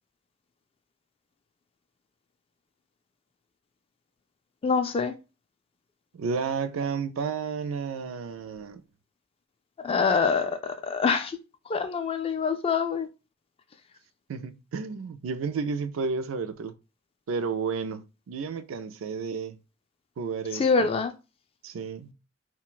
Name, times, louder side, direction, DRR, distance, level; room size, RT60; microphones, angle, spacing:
voice 1, 4.6-5.1 9.8-11.4 11.7-13.1 20.5-21.1, left 5 dB, 30° left, 0.3 m, -25 dB
voice 2, 6.1-8.8 14.3-16.7 17.3-19.6 20.2-20.9 21.6-22.1, right 5 dB, 85° right, 0.4 m, -32 dB
2.4 x 2.2 x 3.7 m
head